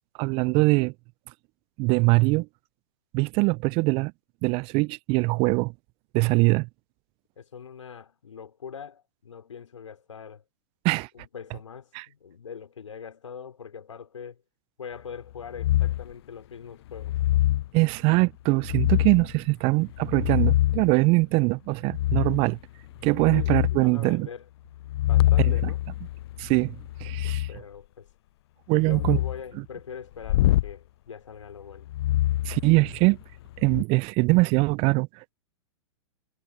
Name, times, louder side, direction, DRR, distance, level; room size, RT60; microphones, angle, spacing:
voice 1, 0.2-0.9 1.8-2.5 3.1-4.1 4.4-5.7 6.1-6.7 10.8-11.1 11.9-12.0 17.7-22.6 23.0-24.3 25.4-25.5 26.4-27.5 28.7-29.2 32.4-33.2 33.6-35.3, right 27 dB, 35° right, 0.6 m, -22 dB
voice 2, 7.4-10.4 11.1-14.4 14.8-17.2 23.3-24.5 25.1-25.8 27.2-28.1 28.8-31.9, left 7 dB, 75° left, 5.7 m, -42 dB
sound 1, 15.6-16.1 16.9-17.7 18.6-19.3 19.9-20.9 21.9-22.5 22.9-23.8 24.8-27.5 28.8-29.4 30.2-30.7 31.9-33.1 33.6-33.8, left 15 dB, 55° left, 0.7 m, -25 dB
figure-of-eight pair, 105°, 16 cm